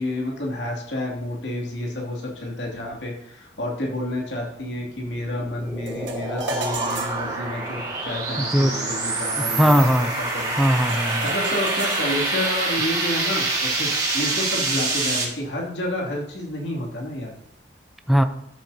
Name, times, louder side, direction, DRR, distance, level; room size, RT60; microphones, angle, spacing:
voice 1, 0.0-10.1 10.3-10.5 11.2-17.3, left 1 dB, 80° left, -2 dB, 2.6 m, -30 dB
sound 1, 4.9-15.3, right 2 dB, 20° right, 3.7 m, -26 dB
sound 2, 5.9-15.3, right 3 dB, 80° right, 1.7 m, -37 dB
voice 2, 8.4-8.7 9.4-10.1 10.6-11.3 18.1-18.2, equal, ahead, 7 dB, 0.6 m, -19 dB
13.0 x 7.6 x 2.8 m, 0.81 s
head